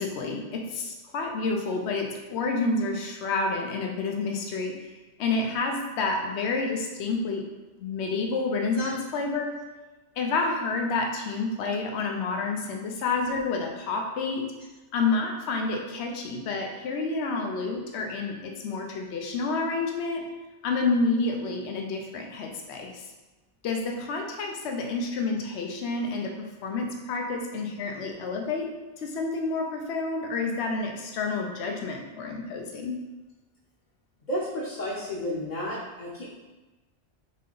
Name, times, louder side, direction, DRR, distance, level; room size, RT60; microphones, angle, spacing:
voice 1, 0.0-4.9 5.2-7.5 7.8-9.6 10.2-14.5 14.9-20.3 20.6-23.1 23.6-26.3 26.6-28.7 29.0-33.0, left 3 dB, 80° left, 2 dB, 0.9 m, -29 dB
voice 2, 34.3-36.3, equal, 50° left, -5 dB, 0.8 m, -32 dB
3.7 x 3.7 x 3.8 m, 1.2 s
omnidirectional pair, 1.1 m